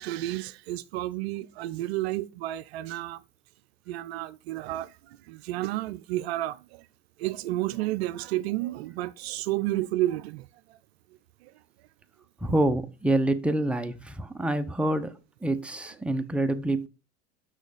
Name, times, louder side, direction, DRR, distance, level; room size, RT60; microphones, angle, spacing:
voice 1, 0.0-3.2 3.9-6.9 7.2-10.8 11.4-11.5, right 16 dB, 65° right, 0.5 m, -31 dB
voice 2, 12.4-16.9, right 1 dB, 5° right, 0.8 m, -27 dB
6.3 x 6.2 x 4.9 m
hypercardioid pair, 80°, 34 cm